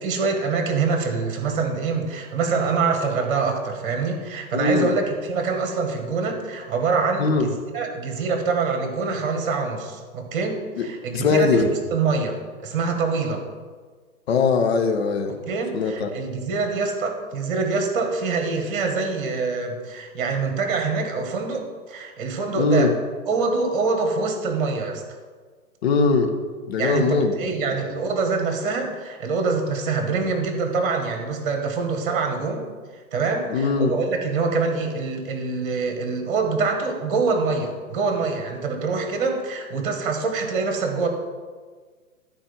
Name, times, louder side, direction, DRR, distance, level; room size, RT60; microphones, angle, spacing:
voice 1, 0.0-7.5 7.7-11.6 11.9-12.4 12.6-13.4 15.5-22.9 23.3-25.0 26.8-32.6 33.1-41.1, right 4 dB, 40° right, 4 dB, 1.8 m, -25 dB
voice 2, 4.5-5.0 7.2-7.5 10.8-10.9 11.1-11.7 14.3-15.3 15.7-16.1 22.5-22.9 25.8-26.4 26.7-27.5 33.5-33.9, left 4 dB, 45° left, 5 dB, 1.1 m, -21 dB
12.5 x 4.4 x 5.4 m, 1.5 s
figure-of-eight pair, 110°, 43 cm